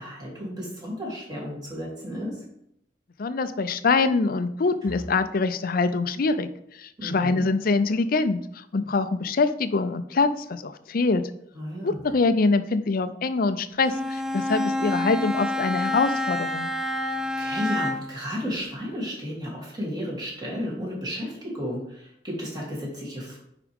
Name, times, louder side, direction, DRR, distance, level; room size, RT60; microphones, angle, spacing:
voice 1, 0.0-2.4 7.0-7.4 11.5-12.0 17.4-23.4, equal, 25° right, -4 dB, 3.0 m, -33 dB
voice 2, 3.2-6.5 6.8-11.2 11.8-16.7, left 3 dB, 55° left, 12 dB, 0.5 m, -24 dB
Bowed string instrument, 13.8-18.2, left 1 dB, 5° right, 0.5 m, -28 dB
9.4 x 4.9 x 3.6 m, 0.75 s
head